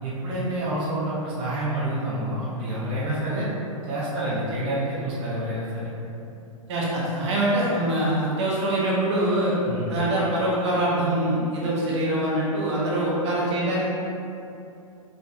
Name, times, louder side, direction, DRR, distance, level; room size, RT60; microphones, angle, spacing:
voice 1, 0.0-3.5 3.9-5.9 9.7-9.9, right 1 dB, 30° right, -8 dB, 1.0 m, -28 dB
voice 2, 6.7-9.5 9.9-13.9, right 1 dB, 50° right, -6 dB, 1.1 m, -24 dB
4.5 x 3.9 x 2.5 m, 2.7 s
figure-of-eight pair, 100°, 18 cm